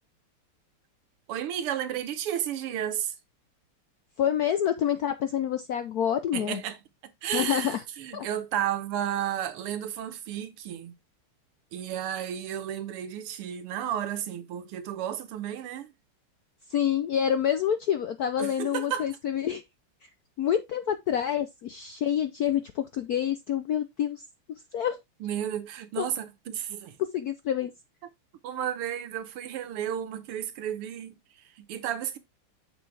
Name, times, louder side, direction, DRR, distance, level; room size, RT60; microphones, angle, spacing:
voice 1, 1.3-3.2 6.3-6.8 7.2-10.9 11.7-15.9 18.4-19.1 25.2-27.0 28.4-32.2, right 10 dB, 85° right, 1.9 m, -33 dB
voice 2, 4.2-6.6 7.3-7.8 8.1-8.3 16.7-19.6 20.4-25.0 26.0-26.1 27.0-27.7, left 9 dB, 75° left, 0.8 m, -27 dB
7.3 x 6.2 x 3.4 m
omnidirectional pair, 2.4 m